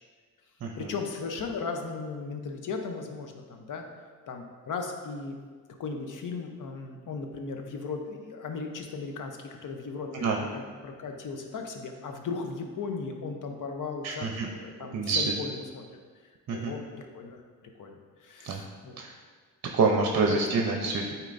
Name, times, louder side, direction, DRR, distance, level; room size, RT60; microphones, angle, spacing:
voice 1, 0.8-3.8 4.3-5.4 5.8-15.8 16.5-19.0 20.3-20.5, left 4 dB, 60° left, 4 dB, 0.9 m, -37 dB
voice 2, 14.0-14.5 14.9-15.2 16.5-16.7 18.4-18.6 19.0-19.1 19.7-21.0, right 4 dB, 50° right, 2 dB, 0.7 m, -26 dB
8.9 x 4.4 x 2.6 m, 1.5 s
cardioid pair, 80°, 35 cm